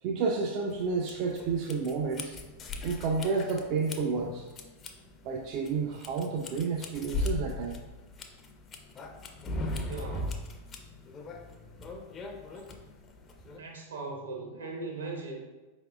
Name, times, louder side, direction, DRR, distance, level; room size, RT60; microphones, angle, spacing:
voice 1, 0.0-2.4 2.8-4.5 5.2-7.8, right 4 dB, 40° right, 1 dB, 0.3 m, -30 dB
sound 1, 0.7-13.6, left 2 dB, 25° left, 0.4 m, -39 dB
voice 2, 9.8-10.5 13.5-15.4, right 3 dB, 70° right, 0 dB, 0.8 m, -39 dB
4.6 x 3.4 x 2.4 m, 1.2 s
figure-of-eight pair, 90°, 0 cm